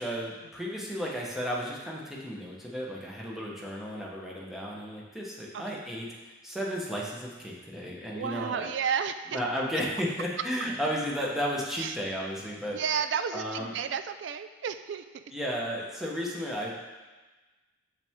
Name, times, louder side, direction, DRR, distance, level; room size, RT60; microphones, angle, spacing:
voice 1, 0.0-6.1 6.4-8.7 9.3-12.8 13.3-13.7 15.3-16.7, equal, ahead, -4 dB, 0.9 m, -33 dB
voice 2, 8.1-9.4 11.8-12.0 12.7-15.2, right 7 dB, 60° right, 10 dB, 0.3 m, -32 dB
6.8 x 5.7 x 3.6 m, 1.2 s
head